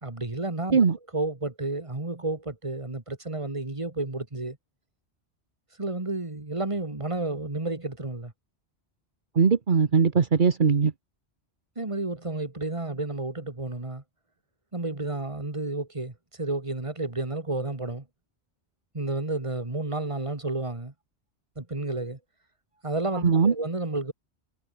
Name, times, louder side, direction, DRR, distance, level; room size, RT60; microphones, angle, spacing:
voice 1, 0.0-0.9 1.1-4.6 5.8-8.3 11.8-14.0 14.7-18.0 18.9-20.9 21.6-22.2 22.8-24.1, right 2 dB, 30° right, 2.3 m, -31 dB
voice 2, 9.3-10.9 23.2-23.5, right 5 dB, 50° right, 1.3 m, -20 dB
omnidirectional pair, 1.1 m